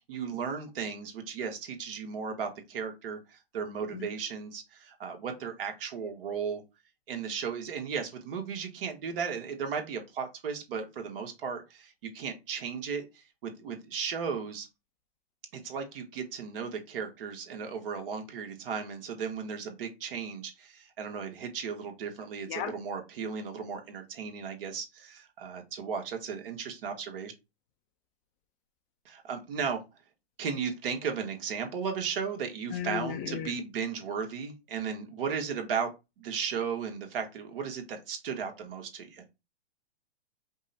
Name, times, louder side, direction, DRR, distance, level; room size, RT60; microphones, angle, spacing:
voice 1, 0.1-6.6 7.1-14.7 15.5-27.3 29.0-29.8 30.4-35.9 36.2-39.2, right 6 dB, 55° right, 1.4 m, -35 dB
voice 2, 32.7-33.5, left 9 dB, 25° left, 0.5 m, -34 dB
5.2 x 2.2 x 3.9 m
hypercardioid pair, 135°, 32 cm